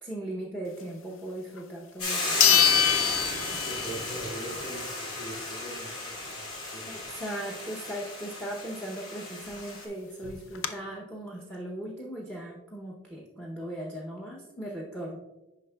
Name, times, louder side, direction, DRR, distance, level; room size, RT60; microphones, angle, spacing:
voice 1, 0.0-2.7 6.8-15.2, right 1 dB, 5° left, -2 dB, 0.7 m, -38 dB
sound 1, 1.6-1.7 2.4-4.2 4.5-4.6 9.3-9.4 9.6-9.7 10.2-10.7, left 10 dB, 65° left, 0.5 m, -24 dB
Hiss / Boiling, 2.0-9.8, left 2 dB, 80° left, 1.9 m, -34 dB
voice 2, 3.5-6.4 6.7-7.0, right 1 dB, 25° left, -6 dB, 1.9 m, -41 dB
9.1 x 5.7 x 2.2 m, 1.0 s
head